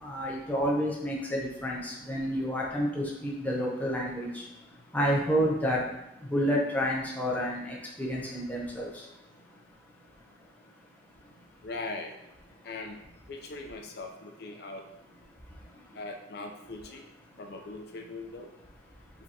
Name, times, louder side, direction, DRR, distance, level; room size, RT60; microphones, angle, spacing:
voice 1, 0.0-4.4 4.9-5.8 6.3-8.9, equal, 10° left, -4 dB, 0.7 m, -29 dB
voice 2, 11.6-12.2 12.6-13.0 13.3-14.8 15.9-17.1 17.4-18.5, left 3 dB, 60° left, 2 dB, 0.6 m, -40 dB
5.1 x 3.5 x 2.8 m, 0.89 s
head